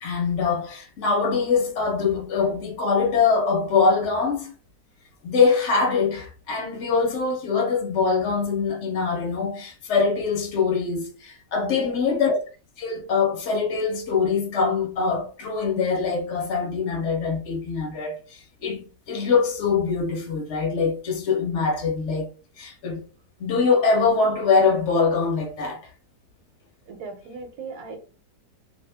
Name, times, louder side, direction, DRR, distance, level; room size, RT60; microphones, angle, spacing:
voice 1, 0.0-4.5 5.2-12.4 12.8-22.3 22.6-23.0 23.4-25.8, left 5 dB, 50° left, 1.1 m, -23 dB
voice 2, 11.6-12.0 26.9-28.0, right 4 dB, 70° right, 1.2 m, -38 dB
2.8 x 2.4 x 3.4 m
omnidirectional pair, 1.8 m